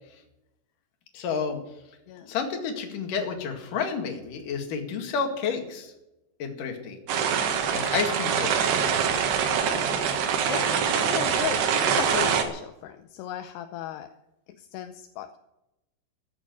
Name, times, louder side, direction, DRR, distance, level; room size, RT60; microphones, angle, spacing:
voice 1, 1.1-1.6 2.3-5.9 6.4-7.0 7.7-8.8, left 5 dB, 55° left, 4 dB, 3.3 m, -30 dB
sound 1, 7.1-12.4, right 7 dB, 75° right, 3.6 m, -24 dB
voice 2, 8.7-9.0 9.9-10.2 10.4-14.1 14.6-15.4, left 12 dB, 80° left, 9 dB, 2.7 m, -36 dB
14.5 x 8.7 x 9.4 m, 0.92 s
omnidirectional pair, 4.7 m